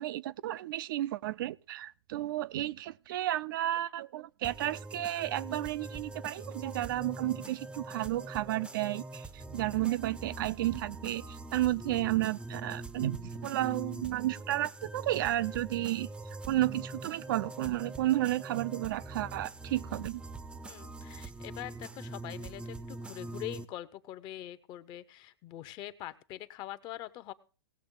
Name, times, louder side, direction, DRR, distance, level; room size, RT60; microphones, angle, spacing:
voice 1, 0.0-16.1 16.5-20.2, right 15 dB, 55° right, 0.5 m, -32 dB
sound 1, 4.4-23.6, right 2 dB, 5° right, 0.6 m, -43 dB
voice 2, 20.6-27.3, left 14 dB, 30° left, 0.8 m, -43 dB
18.5 x 7.0 x 3.8 m
hypercardioid pair, 125°, 14 cm